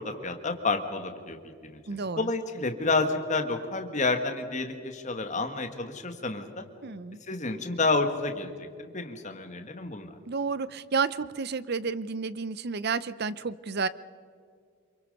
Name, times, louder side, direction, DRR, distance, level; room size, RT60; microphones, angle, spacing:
voice 1, 0.0-1.4 1.7-1.8 2.2-6.5 7.3-10.1, left 3 dB, 35° left, 6 dB, 1.7 m, -29 dB
voice 2, 1.9-2.3 6.8-7.2 10.3-13.9, right 5 dB, 45° right, 17 dB, 0.6 m, -31 dB
27.0 x 23.5 x 5.4 m, 2.1 s
head